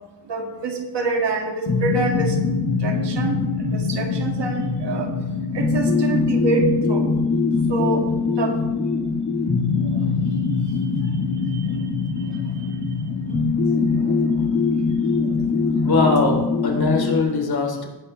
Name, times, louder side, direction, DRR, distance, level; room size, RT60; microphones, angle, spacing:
voice 1, 0.3-2.4 2.8-5.1 5.5-7.1 7.7-8.1 8.4-8.5 11.5-11.6 14.0-14.1 15.2-15.3, right 3 dB, 90° right, 2 dB, 2.2 m, -26 dB
sound 1, 1.7-17.2, left 4 dB, 45° left, 2.0 m, -22 dB
voice 2, 15.8-17.9, left 3 dB, 65° left, 1 dB, 3.1 m, -21 dB
18.5 x 9.2 x 3.3 m, 1.1 s
wide cardioid pair, 95°, 41 cm